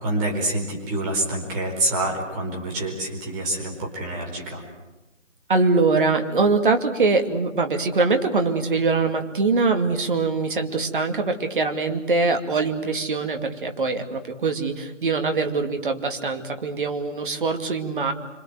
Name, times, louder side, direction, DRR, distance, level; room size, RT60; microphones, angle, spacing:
voice 1, 0.0-4.6, right 1 dB, 15° right, 0 dB, 4.6 m, -27 dB
voice 2, 5.5-18.1, right 3 dB, 40° right, 6 dB, 2.6 m, -23 dB
26.5 x 25.0 x 7.9 m, 1.0 s
figure-of-eight pair, 160°, 38 cm